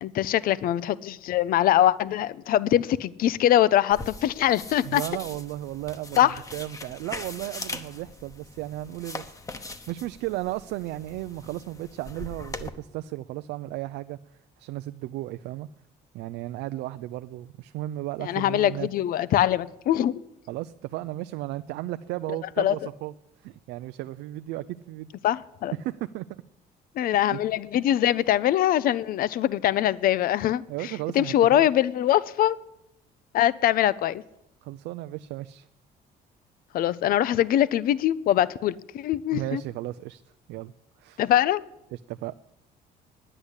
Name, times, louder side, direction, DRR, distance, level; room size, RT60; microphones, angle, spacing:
voice 1, 0.0-5.0 6.2-6.4 18.2-20.2 22.6-22.8 25.2-25.7 26.9-32.6 33.3-34.2 36.7-39.6 41.2-41.6, left 12 dB, 60° left, 19 dB, 0.5 m, -23 dB
sound 1, 3.9-12.7, left 2 dB, 20° left, 0.9 m, -41 dB
voice 2, 4.8-14.2 14.6-15.7 16.1-18.9 20.5-23.1 23.4-25.1 25.8-26.4 27.1-27.4 30.7-31.6 34.6-35.7 39.3-40.2 40.5-40.7 41.0-41.2 41.9-42.3, right 15 dB, 85° right, 11 dB, 0.4 m, -35 dB
9.9 x 9.9 x 8.1 m, 0.82 s
cardioid pair, 110°, 17 cm